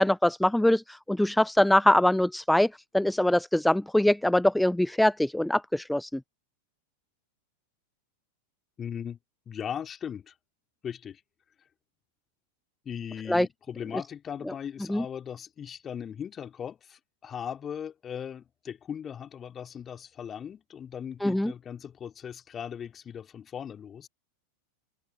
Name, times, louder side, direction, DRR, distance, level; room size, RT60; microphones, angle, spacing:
voice 1, 0.0-6.2 13.3-13.5 14.9-15.0 21.2-21.5, left 1 dB, 5° left, 0.7 m, -23 dB
voice 2, 8.8-9.2 9.5-10.3 10.8-11.2 12.9-24.1, left 8 dB, 25° left, 3.7 m, -38 dB
open air
figure-of-eight pair, 90°, 0 cm